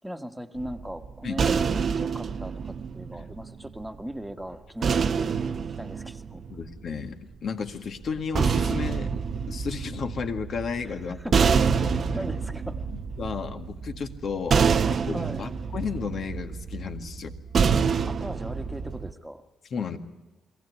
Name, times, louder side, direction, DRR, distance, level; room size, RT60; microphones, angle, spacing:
voice 1, 0.0-5.4 5.8-6.4 10.8-11.5 12.1-12.8 15.1-15.4 18.1-19.4, equal, 5° right, 6 dB, 1.6 m, -38 dB
sound 1, 0.6-3.9 4.8-7.1 8.0-19.1, right 6 dB, 50° right, 0.8 m, -27 dB
voice 2, 6.5-9.1 9.5-11.4 11.8-12.0 13.2-14.6 14.9-17.3 19.7-20.0, left 6 dB, 55° left, 6 dB, 1.9 m, -33 dB
22.5 x 16.5 x 9.6 m, 1.1 s
cardioid pair, 90°, 0 cm